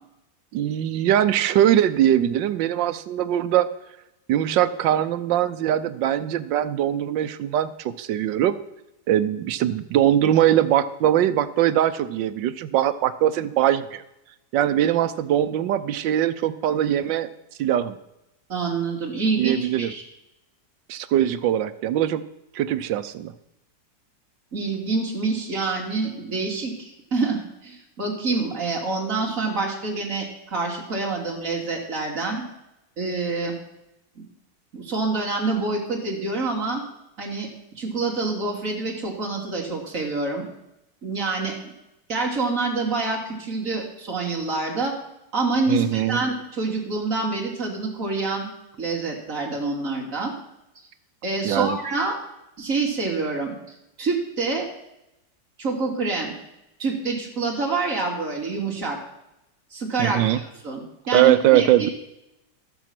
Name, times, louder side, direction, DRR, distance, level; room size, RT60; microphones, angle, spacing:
voice 1, 0.5-3.7 4.3-8.6 9.1-14.0 14.5-17.3 17.6-18.0 19.4-19.9 20.9-22.2 22.5-23.3 45.7-46.2 51.4-51.8 60.0-60.4 61.1-61.9, right 11 dB, 85° right, 13 dB, 1.4 m, -21 dB
voice 2, 18.5-20.0 24.5-32.4 33.0-33.6 34.2-34.3 34.7-36.8 37.2-37.5 37.8-40.4 41.0-41.5 42.1-44.9 45.3-48.5 48.8-50.3 51.2-52.2 52.6-53.5 54.0-54.7 55.6-56.3 56.8-59.0 59.7-61.9, right 3 dB, 45° right, -1 dB, 2.9 m, -26 dB
14.5 x 7.2 x 6.0 m, 0.88 s
omnidirectional pair, 1.9 m